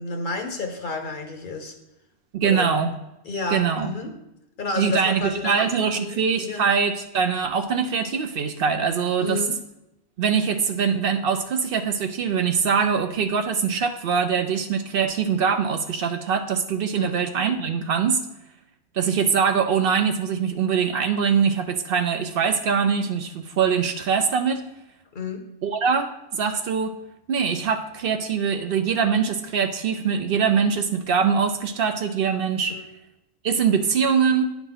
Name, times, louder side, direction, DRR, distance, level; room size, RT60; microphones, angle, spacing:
voice 1, 0.0-1.7 2.4-2.8 3.2-4.1 4.6-5.6 5.9-6.6 9.2-9.5 17.0-17.1 25.1-25.4 32.7-32.8, left 3 dB, 50° left, 4 dB, 0.9 m, -31 dB
voice 2, 2.3-2.9 3.5-3.9 4.8-9.4 10.2-18.3 18.9-24.6 25.6-26.9 27.3-32.7 33.4-34.4, right 6 dB, 65° right, 7 dB, 0.7 m, -23 dB
10.0 x 3.6 x 3.9 m, 0.88 s
omnidirectional pair, 1.1 m